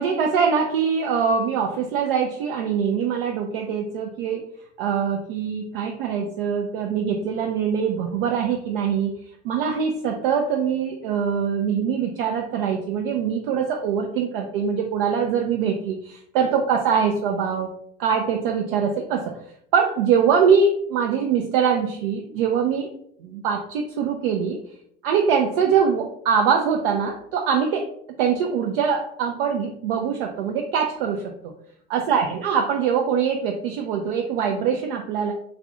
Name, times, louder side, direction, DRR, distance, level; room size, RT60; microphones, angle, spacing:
voice 1, 0.0-4.5 4.8-9.1 9.4-17.7 18.0-19.4 19.7-22.9 23.2-24.6 25.0-27.9 28.2-31.5 31.9-35.3, right 6 dB, 60° right, 2 dB, 0.4 m, -23 dB
3.2 x 2.4 x 2.4 m, 0.70 s
figure-of-eight pair, 70°, 31 cm